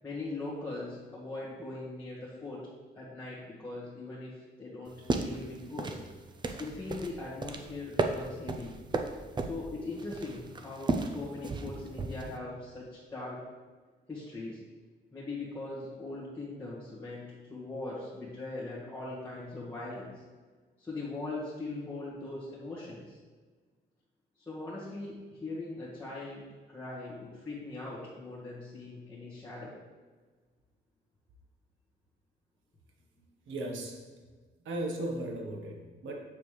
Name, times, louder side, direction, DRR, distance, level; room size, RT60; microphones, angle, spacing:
voice 1, 0.0-2.7 2.9-6.0 6.6-8.7 9.4-13.4 14.1-14.6 15.1-20.2 20.8-23.2 24.4-29.7, left 2 dB, 10° left, -9 dB, 1.7 m, -40 dB
sound 1, 4.9-12.4, right 3 dB, 25° right, 0.5 m, -35 dB
voice 2, 33.5-34.0 34.6-36.1, right 1 dB, 85° right, 1 dB, 1.3 m, -36 dB
7.3 x 6.8 x 3.3 m, 1.4 s
cardioid pair, 155°, 19 cm